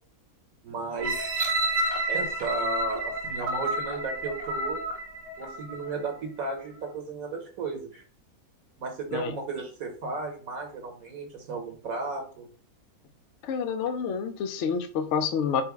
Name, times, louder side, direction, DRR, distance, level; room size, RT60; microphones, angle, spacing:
voice 1, 0.6-1.3 2.1-4.8 5.4-8.0 8.8-12.5, right 3 dB, 70° right, 3 dB, 1.3 m, -34 dB
sound 1, 1.0-5.9 6.5-6.6, right 1 dB, 90° right, 1.6 m, -30 dB
voice 2, 13.4-15.6, left 6 dB, 70° left, 8 dB, 0.7 m, -28 dB
4.4 x 2.1 x 4.6 m, 0.40 s
omnidirectional pair, 1.6 m